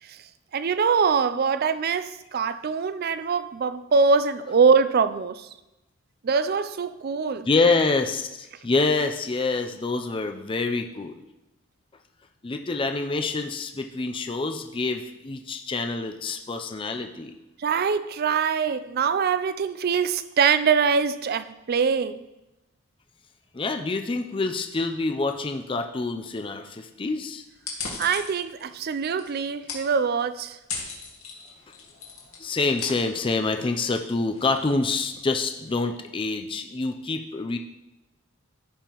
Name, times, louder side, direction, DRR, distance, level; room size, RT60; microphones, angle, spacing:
voice 1, 0.5-5.5 6.2-7.5 17.6-22.2 28.0-30.6, right 5 dB, 45° right, 0.4 m, -23 dB
voice 2, 7.5-11.2 12.4-17.3 23.5-27.4 32.4-37.6, left 3 dB, 25° left, 0.4 m, -26 dB
sound 1, 27.5-35.3, left 4 dB, 75° left, 1.9 m, -40 dB
14.5 x 5.4 x 3.0 m
head